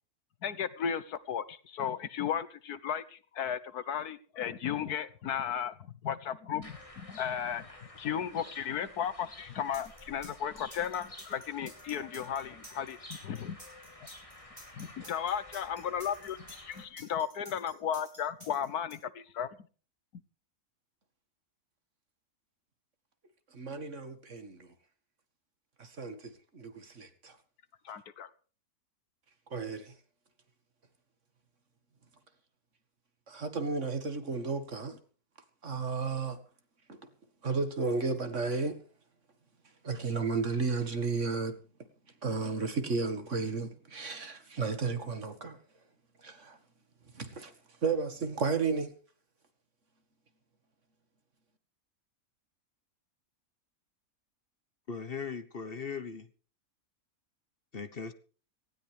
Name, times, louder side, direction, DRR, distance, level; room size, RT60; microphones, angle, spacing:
voice 1, 0.4-7.6 8.0-13.0 13.2-13.6 14.7-16.4 16.6-19.5 27.9-28.3, left 8 dB, 85° left, 1.6 m, -35 dB
sound 1, 6.6-16.8, left 1 dB, 20° left, 3.3 m, -51 dB
sound 2, 9.7-18.9, equal, 20° right, 8.0 m, -51 dB
voice 2, 23.5-24.7 25.8-27.4 29.5-29.9 33.3-35.0 35.6-36.4 36.9-37.0 37.4-38.8 39.8-41.5 42.2-45.6 46.2-46.6 47.1-47.5 47.8-48.9, right 4 dB, 50° right, 2.2 m, -33 dB
voice 3, 54.9-56.3 57.7-58.1, left 5 dB, 40° left, 1.3 m, -38 dB
18.5 x 16.5 x 3.5 m
omnidirectional pair, 1.6 m